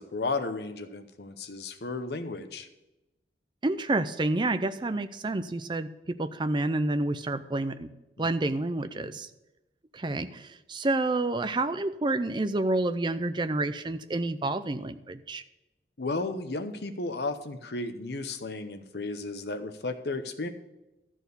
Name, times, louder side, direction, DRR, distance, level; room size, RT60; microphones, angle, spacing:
voice 1, 0.0-2.7 8.2-8.3 8.9-9.2 16.0-20.5, left 3 dB, 65° left, 9 dB, 0.8 m, -34 dB
voice 2, 3.6-7.9 8.2-9.3 9.9-15.4, right 2 dB, 25° right, 11 dB, 0.5 m, -29 dB
12.5 x 4.5 x 8.2 m, 0.98 s
head